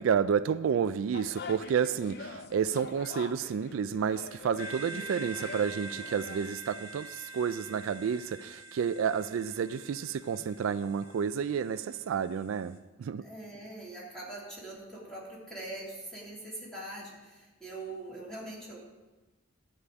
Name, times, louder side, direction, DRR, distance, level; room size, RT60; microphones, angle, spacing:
voice 1, 0.0-13.2, right 7 dB, 70° right, 13 dB, 0.3 m, -30 dB
sound 1, 1.1-6.5, left 4 dB, 50° left, 0.5 m, -44 dB
sound 2, 4.6-12.8, right 3 dB, 85° left, 1.7 m, -45 dB
voice 2, 13.2-18.8, right 2 dB, 5° left, -6 dB, 2.8 m, -43 dB
11.0 x 5.0 x 8.2 m, 1.2 s
head